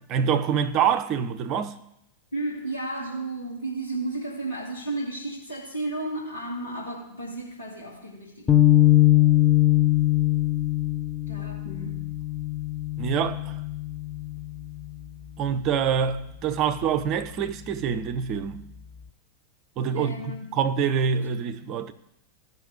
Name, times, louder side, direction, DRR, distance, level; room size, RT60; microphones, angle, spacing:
voice 1, 0.1-1.7 13.0-13.6 15.4-18.6 19.8-21.9, right 7 dB, 35° right, 0.7 m, -26 dB
voice 2, 2.3-8.7 11.3-12.1 19.9-20.6, right 2 dB, 75° left, 2.0 m, -33 dB
sound 1, 8.5-14.9, left 15 dB, 20° left, 0.6 m, -22 dB
15.0 x 5.6 x 4.0 m
figure-of-eight pair, 90°, 0 cm